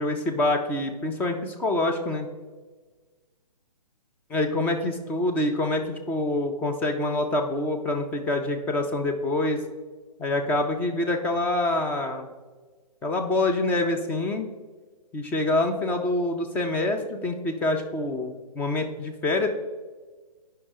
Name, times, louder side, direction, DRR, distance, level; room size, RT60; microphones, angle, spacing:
voice 1, 0.0-2.3 4.3-9.6 10.2-12.3 13.0-14.5 15.1-19.5, left 2 dB, 10° left, 4 dB, 0.5 m, -26 dB
9.7 x 5.5 x 3.7 m, 1.3 s
hypercardioid pair, 145°, 21 cm